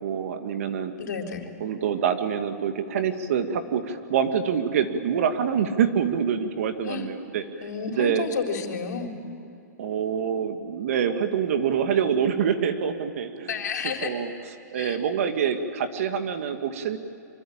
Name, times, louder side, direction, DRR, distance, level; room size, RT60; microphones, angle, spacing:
voice 1, 0.0-0.9 1.6-7.4 8.0-8.2 9.8-13.6 14.0-14.3 14.7-17.0, right 7 dB, 50° right, 7 dB, 2.1 m, -26 dB
voice 2, 1.0-1.5 6.8-7.1 7.6-9.2 13.5-14.2 14.7-15.0, left 6 dB, 80° left, 3 dB, 3.9 m, -31 dB
25.0 x 25.0 x 8.9 m, 2.7 s
hypercardioid pair, 170°, 9 cm